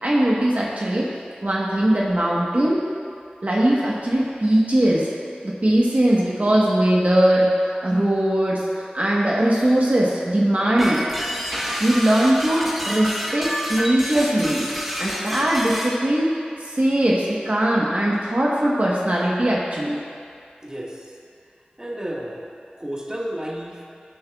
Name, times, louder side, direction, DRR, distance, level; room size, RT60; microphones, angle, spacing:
voice 1, 0.0-1.1 1.4-2.8 3.4-5.1 5.4-11.0 11.8-14.7 15.0-16.3 16.6-20.0, right 1 dB, 50° right, -5 dB, 1.2 m, -20 dB
sound 1, 10.8-16.0, equal, 5° right, 1.2 m, -28 dB
voice 2, 20.6-21.0 21.8-22.5 22.8-23.8, equal, 20° right, -4 dB, 1.6 m, -31 dB
17.5 x 6.9 x 2.4 m, 2.3 s
wide cardioid pair, 40°, 3 cm